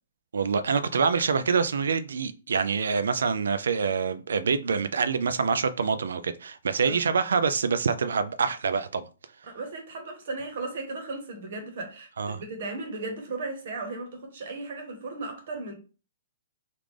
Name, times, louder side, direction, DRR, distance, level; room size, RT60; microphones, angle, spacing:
voice 1, 0.3-9.1 12.2-12.4, right 5 dB, 90° right, 0.3 m, -26 dB
voice 2, 9.5-15.7, right 3 dB, 50° right, 1.0 m, -36 dB
3.2 x 2.4 x 3.5 m
hypercardioid pair, 170°, 0 cm